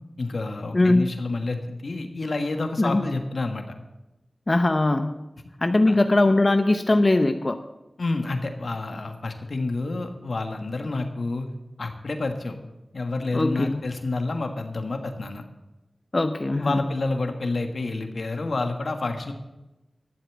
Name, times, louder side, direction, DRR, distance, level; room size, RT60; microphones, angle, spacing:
voice 1, 0.2-3.6 5.9-6.0 8.0-11.5 11.8-12.6 12.9-15.4 16.6-19.3, left 3 dB, 75° left, 5 dB, 1.5 m, -29 dB
voice 2, 0.7-1.0 2.8-3.0 4.5-5.2 5.6-7.6 13.3-13.8 16.1-16.8, left 2 dB, 45° left, 8 dB, 0.7 m, -20 dB
12.5 x 7.6 x 7.3 m, 0.99 s
cardioid pair, 45°, 0 cm